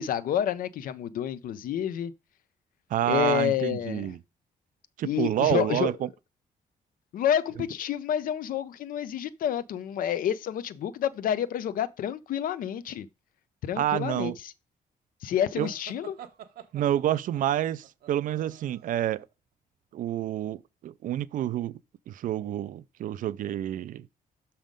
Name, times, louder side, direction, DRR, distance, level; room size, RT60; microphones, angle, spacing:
voice 1, 0.0-2.1 3.1-4.1 5.0-5.9 7.1-13.1 13.6-14.3 15.2-16.2, left 10 dB, 70° left, 0.5 m, -29 dB
voice 2, 2.9-4.2 5.0-5.9 13.8-14.4 15.6-15.7 16.7-19.3 19.9-21.8 22.1-24.1, right 12 dB, 60° right, 0.4 m, -28 dB
sound 1, 15.6-19.2, right 10 dB, 85° right, 1.1 m, -47 dB
6.2 x 5.6 x 5.1 m
cardioid pair, 165°, 15 cm